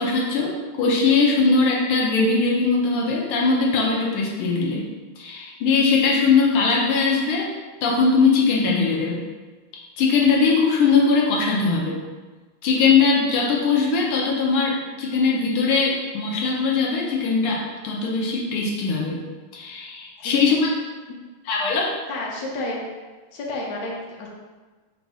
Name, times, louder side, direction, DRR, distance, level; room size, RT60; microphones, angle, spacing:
voice 1, 0.0-4.8 5.2-7.5 7.8-9.2 10.0-12.0 12.6-19.2 19.5-20.7 21.5-21.9, left 4 dB, 85° left, -2 dB, 1.6 m, -20 dB
voice 2, 22.1-22.8 23.3-24.3, left 2 dB, 60° left, -3 dB, 1.3 m, -30 dB
4.0 x 2.6 x 4.7 m, 1.3 s
omnidirectional pair, 2.3 m